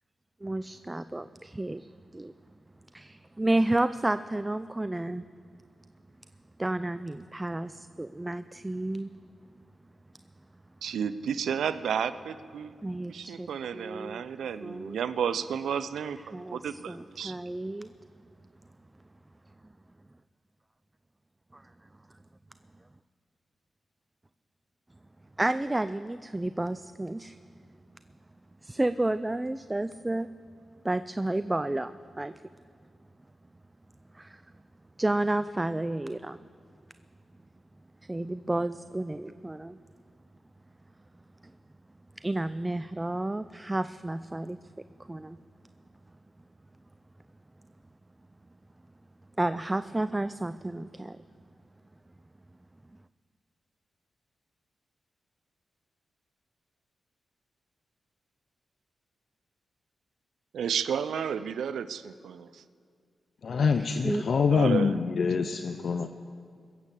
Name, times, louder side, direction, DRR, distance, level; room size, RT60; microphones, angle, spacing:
voice 1, 0.4-2.3 3.4-5.2 6.6-9.1 12.8-13.5 13.7-14.2 14.6-15.0 16.3-17.9 21.5-21.6 25.4-27.4 28.6-30.3 30.8-32.3 34.1-34.4 35.0-36.4 38.1-39.8 42.2-44.6 45.1-45.4 49.4-51.2 63.8-64.3 65.4-65.5, right 1 dB, 20° right, 13 dB, 0.4 m, -31 dB
voice 2, 10.8-12.7 13.1-17.4 60.5-62.6 64.5-65.0, right 7 dB, 85° right, 14 dB, 0.5 m, -32 dB
voice 3, 63.4-66.1, left 5 dB, 65° left, 8 dB, 0.6 m, -25 dB
21.5 x 8.4 x 7.4 m, 2.2 s
cardioid pair, 55°, 0 cm